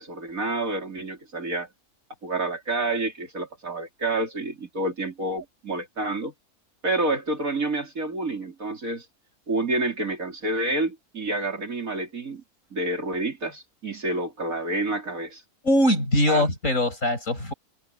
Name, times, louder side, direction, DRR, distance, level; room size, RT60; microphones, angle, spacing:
voice 1, 0.0-1.7 2.2-6.3 6.8-9.1 9.5-12.4 12.7-15.4 16.3-16.5, right 2 dB, 60° right, 4.4 m, -28 dB
voice 2, 15.6-17.5, left 1 dB, 55° left, 8.1 m, -22 dB
omnidirectional pair, 1.6 m